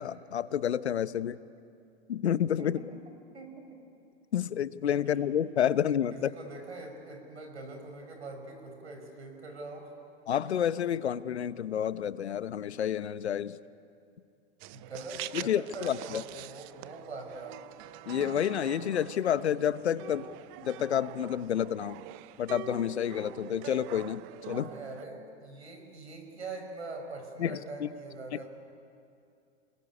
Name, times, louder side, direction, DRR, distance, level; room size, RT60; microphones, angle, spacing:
voice 1, 0.0-1.4 2.1-2.8 4.3-6.3 10.3-13.6 15.3-16.2 18.1-20.3 20.6-22.0 22.4-24.7 27.4-27.9 28.3-28.4, left 9 dB, 85° left, 16 dB, 0.9 m, -29 dB
voice 2, 2.6-3.0 3.3-3.8 6.1-9.9 14.7-17.6 24.5-28.5, right 3 dB, 90° right, 4 dB, 5.5 m, -43 dB
sound 1, 14.6-25.0, right 15 dB, 40° right, 0.8 m, -45 dB
27.5 x 21.0 x 10.0 m, 2.5 s
hypercardioid pair, 110°, 32 cm